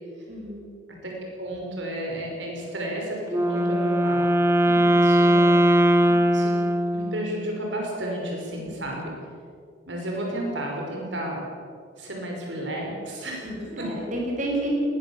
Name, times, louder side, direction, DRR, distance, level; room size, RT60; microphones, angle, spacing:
voice 1, 0.3-0.7 4.6-4.9 6.0-6.3 8.5-8.8 13.4-14.7, right 1 dB, 40° right, -2 dB, 6.0 m, -32 dB
voice 2, 1.4-4.2 4.8-5.5 6.3-6.5 6.9-9.1 9.9-11.4 12.0-13.5 13.8-13.9, right 1 dB, 75° right, -1 dB, 5.6 m, -32 dB
Wind instrument woodwind instrument, 3.3-7.5, equal, 15° right, 1.0 m, -20 dB
20.5 x 20.5 x 7.3 m, 2.3 s
head